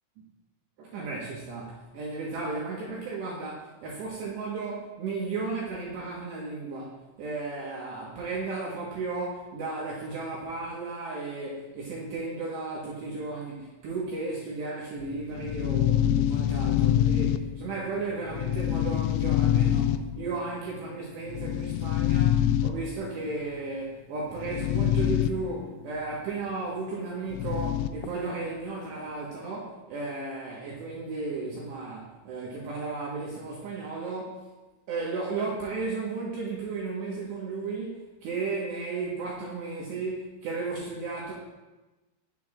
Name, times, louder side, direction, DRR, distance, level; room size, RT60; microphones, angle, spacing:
voice 1, 0.8-34.5 34.9-41.3, right 3 dB, 70° right, -5 dB, 3.0 m, -34 dB
sound 1, 15.0-17.9 18.3-20.4 21.3-23.1 24.3-25.3 25.6-25.7 27.3-28.1, left 11 dB, 85° left, 3.2 m, -25 dB
18.0 x 7.0 x 2.4 m, 1.1 s
omnidirectional pair, 5.9 m